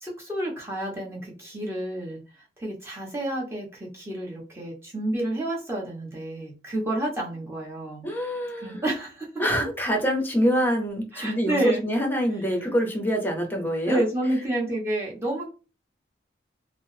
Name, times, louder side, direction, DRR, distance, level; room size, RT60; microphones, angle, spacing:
voice 1, 0.0-2.2 2.6-8.1 8.6-9.3 11.1-11.8 13.9-15.4, right 1 dB, 15° right, -3 dB, 0.9 m, -29 dB
voice 2, 8.0-8.8 9.4-14.0, equal, 10° left, 2 dB, 0.7 m, -25 dB
3.5 x 2.0 x 2.6 m, 0.33 s
head